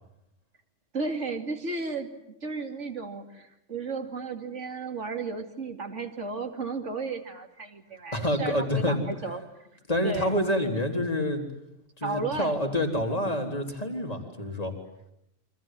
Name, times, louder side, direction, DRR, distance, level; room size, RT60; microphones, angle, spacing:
voice 1, 0.9-2.1 2.4-9.4 10.0-10.4 12.0-12.6, right 3 dB, 80° right, 5 dB, 3.0 m, -34 dB
voice 2, 8.1-9.0 9.9-11.5 12.0-14.7, left 1 dB, 30° left, 3 dB, 4.1 m, -27 dB
29.0 x 25.5 x 7.7 m, 0.81 s
omnidirectional pair, 1.2 m